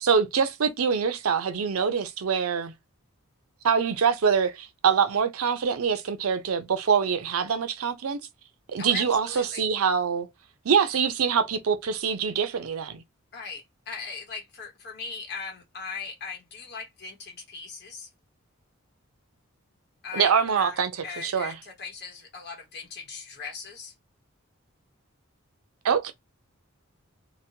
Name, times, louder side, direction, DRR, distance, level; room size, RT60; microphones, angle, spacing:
voice 1, 0.0-2.7 3.6-8.2 8.7-10.3 10.6-13.0 20.1-20.9 21.2-21.5 25.8-26.1, right 6 dB, 85° right, 0.5 m, -24 dB
voice 2, 8.8-9.6 13.3-18.1 20.0-23.9, left 5 dB, 50° left, 1.0 m, -39 dB
2.9 x 2.1 x 2.7 m
head